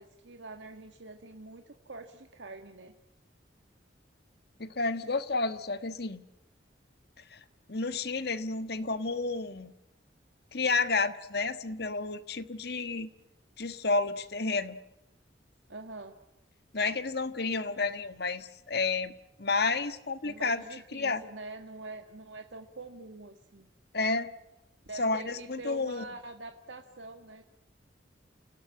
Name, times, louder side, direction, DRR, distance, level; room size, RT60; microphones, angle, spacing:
voice 1, 0.0-2.9 15.7-16.2 20.2-23.7 24.9-27.4, right 2 dB, 80° right, 6 dB, 1.7 m, -45 dB
voice 2, 4.6-6.2 7.3-7.4 7.7-9.7 10.5-13.1 13.6-14.8 16.7-19.1 19.4-20.6 20.9-21.2 23.9-24.3 24.9-26.0, left 3 dB, 60° left, 11 dB, 1.5 m, -31 dB
30.0 x 17.0 x 9.9 m, 0.87 s
head